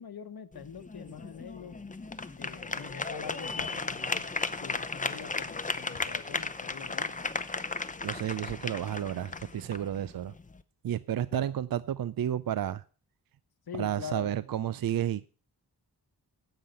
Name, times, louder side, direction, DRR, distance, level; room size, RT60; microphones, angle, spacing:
voice 1, 0.0-1.8 2.4-4.3 4.6-7.2 11.3-11.5 13.7-14.4, left 7 dB, 65° left, 11 dB, 1.1 m, -44 dB
sound 1, 0.5-10.6, left 3 dB, 20° left, 0.6 m, -36 dB
sound 2, 3.6-4.5 4.8-4.9 5.9-6.6 7.1-7.2 8.5-9.0 9.3-10.0, left 5 dB, 90° left, 2.2 m, -53 dB
voice 2, 8.0-10.3 10.8-12.8 13.7-15.3, right 10 dB, 60° right, 17 dB, 0.5 m, -31 dB
16.0 x 5.7 x 6.6 m, 0.39 s
wide cardioid pair, 100°, 41 cm